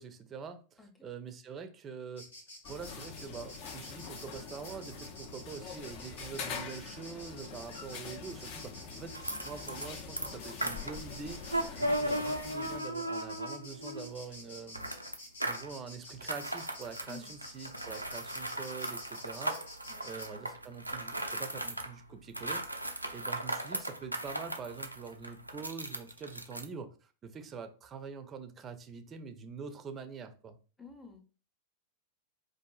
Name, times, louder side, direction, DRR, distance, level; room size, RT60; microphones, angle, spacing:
voice 1, 0.0-2.3 2.7-9.1 9.4-11.4 11.8-14.9 15.4-19.6 20.0-30.6, right 5 dB, 25° right, 0.5 m, -45 dB
Insect, 2.2-20.3, left 1 dB, 70° left, 1.0 m, -50 dB
sound 1, 2.6-12.8, left 6 dB, 45° left, 0.5 m, -44 dB
sound 2, 9.1-9.9 10.2-14.2 14.7-15.7 16.2-21.9 22.3-26.6, right 1 dB, 90° right, 0.4 m, -37 dB
voice 2, 30.8-31.2, left 4 dB, 10° left, 0.8 m, -49 dB
4.5 x 2.5 x 2.3 m
figure-of-eight pair, 90°, 0 cm